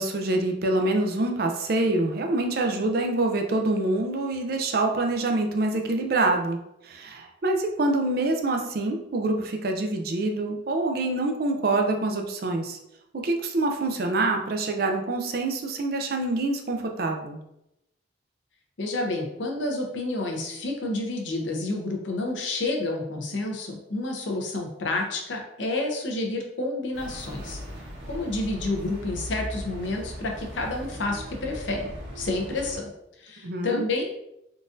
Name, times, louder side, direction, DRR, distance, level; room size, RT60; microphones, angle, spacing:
voice 1, 0.0-6.6 6.8-12.8 13.1-17.4 33.4-33.9, right 2 dB, 55° right, 3 dB, 0.4 m, -26 dB
voice 2, 18.8-27.6 28.1-32.9 33.2-34.1, left 2 dB, 85° left, 1 dB, 0.7 m, -29 dB
sound 1, 26.9-32.8, equal, 85° right, 1.4 m, -38 dB
3.8 x 2.5 x 2.5 m, 0.83 s
head